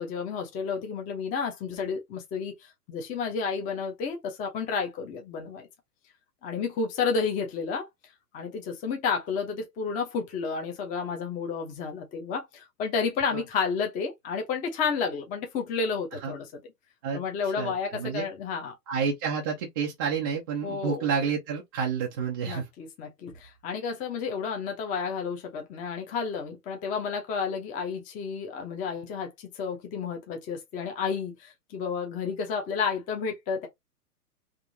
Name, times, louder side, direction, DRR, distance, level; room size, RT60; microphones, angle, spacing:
voice 1, 0.0-5.7 6.4-7.9 8.3-16.6 17.1-18.8 20.6-21.1 22.4-33.7, left 5 dB, 15° left, 0.7 m, -31 dB
voice 2, 17.6-18.2 18.9-22.7, right 6 dB, 15° right, 0.4 m, -29 dB
3.6 x 2.6 x 2.7 m
hypercardioid pair, 120°, 47 cm